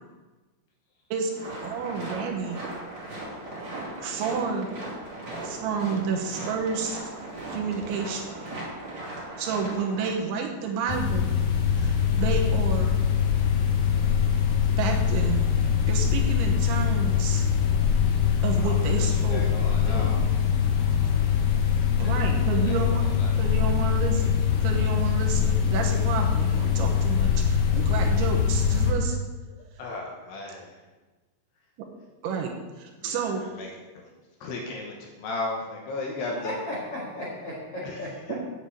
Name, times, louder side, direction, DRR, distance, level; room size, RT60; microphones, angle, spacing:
sound 1, 1.3-10.1, right 1 dB, 30° right, 2.7 m, -37 dB
voice 1, 1.6-2.6 4.0-4.7 5.4-7.0 7.5-8.4 9.4-11.3 11.7-13.0 14.8-15.5 15.9-17.5 18.4-19.4 19.9-20.2 22.0-23.0 23.3-29.2 32.2-33.4 38.3-38.4, right 5 dB, 75° right, 1 dB, 3.2 m, -30 dB
sound 2, 10.9-28.9, left 7 dB, 85° left, 1.8 m, -23 dB
voice 2, 18.6-20.2 22.0-22.1 22.5-23.3 29.8-30.7 33.0-33.7 34.0-34.1 34.4-36.6 37.8-38.0, left 2 dB, 70° left, 0 dB, 2.9 m, -36 dB
voice 3, 36.2-38.3, left 1 dB, 50° left, -6 dB, 1.8 m, -35 dB
8.0 x 7.9 x 8.2 m, 1.2 s
omnidirectional pair, 5.8 m